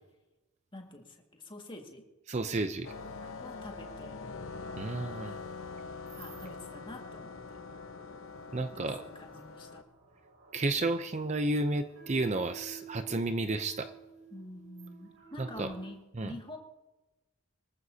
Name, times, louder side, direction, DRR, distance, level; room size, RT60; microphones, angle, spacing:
voice 1, 0.7-2.0 3.4-4.2 5.2-5.4 6.2-7.6 8.7-9.8 14.3-16.0 16.2-16.6, left 1 dB, 20° left, 2 dB, 1.9 m, -46 dB
voice 2, 2.3-2.9 4.8-5.3 8.5-9.0 10.5-13.9 15.4-15.7 16.2-16.3, right 2 dB, 30° right, 9 dB, 0.6 m, -32 dB
sound 1, 2.5-15.9, right 6 dB, 70° right, 6.5 m, -54 dB
sound 2, 2.8-9.8, left 4 dB, 65° left, 0.9 m, -44 dB
24.5 x 14.5 x 2.8 m, 1.1 s
head